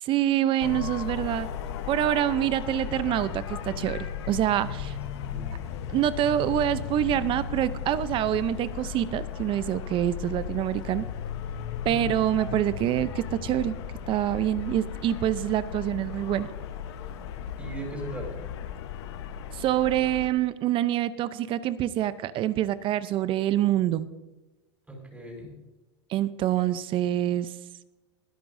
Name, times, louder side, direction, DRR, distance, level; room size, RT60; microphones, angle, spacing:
voice 1, 0.0-1.5 1.9-5.0 5.9-11.1 11.8-13.7 14.1-16.5 19.5-24.1 26.1-27.5, right 12 dB, 35° right, 14 dB, 0.6 m, -26 dB
sound 1, 0.6-20.3, left 8 dB, 70° left, 1.1 m, -36 dB
voice 2, 5.3-5.6 11.9-12.3 17.6-18.5 24.9-25.6, right 2 dB, 10° right, 0 dB, 5.2 m, -39 dB
20.5 x 11.5 x 2.7 m, 1.1 s
hypercardioid pair, 120°, 15 cm